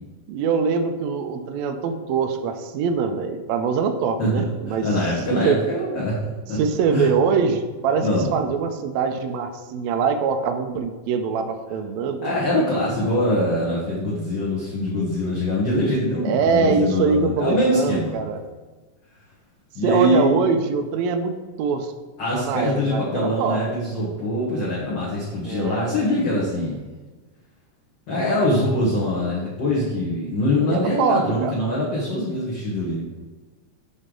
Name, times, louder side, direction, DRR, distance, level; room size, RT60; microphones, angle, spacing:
voice 1, 0.3-4.8 5.3-5.7 6.6-12.3 16.2-18.4 19.8-21.9 22.3-23.6 25.4-25.8 30.6-31.5, right 5 dB, 85° right, 6 dB, 1.5 m, -23 dB
voice 2, 4.2-6.2 6.5-6.6 6.9-7.1 8.0-8.3 12.2-18.2 19.7-20.4 22.2-26.8 28.1-33.0, left 1 dB, 55° left, -7 dB, 1.4 m, -23 dB
6.4 x 5.3 x 3.8 m, 1.3 s
omnidirectional pair, 3.7 m